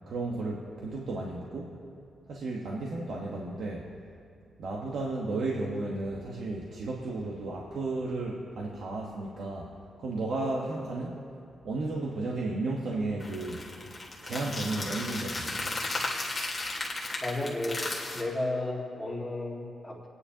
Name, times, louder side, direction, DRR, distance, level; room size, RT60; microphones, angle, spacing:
voice 1, 0.1-1.8 2.3-3.9 4.6-9.7 10.0-11.2 11.6-13.7 14.2-15.7, right 2 dB, 70° right, -3 dB, 1.2 m, -33 dB
sound 1, 13.2-18.2, left 2 dB, 25° left, 1.6 m, -35 dB
voice 2, 17.2-17.8 18.1-20.1, left 1 dB, 5° left, -3 dB, 1.9 m, -33 dB
28.0 x 9.7 x 2.9 m, 2.5 s
wide cardioid pair, 160°, 0 cm